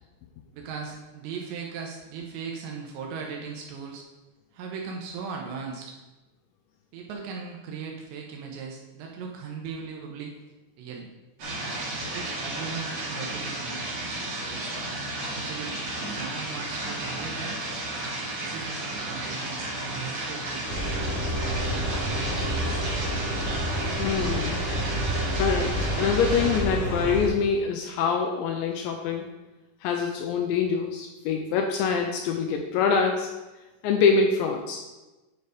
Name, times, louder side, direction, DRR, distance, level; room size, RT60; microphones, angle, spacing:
voice 1, 0.5-4.1 4.5-6.0 6.9-10.3 10.8-11.1 12.1-13.8 14.4-14.9 15.2-15.8 16.0-17.6 18.3-20.6 21.2-22.8, right 5 dB, 75° right, 0 dB, 2.9 m, -38 dB
sound 1, 11.4-26.6, right 2 dB, 45° right, 2.2 m, -33 dB
sound 2, 20.7-27.3, equal, 50° left, 2.5 m, -29 dB
voice 2, 24.0-24.6 25.3-29.3 29.8-33.3 33.8-34.8, left 5 dB, 85° left, 3 dB, 2.6 m, -25 dB
9.4 x 4.6 x 5.0 m, 1.1 s
omnidirectional pair, 5.7 m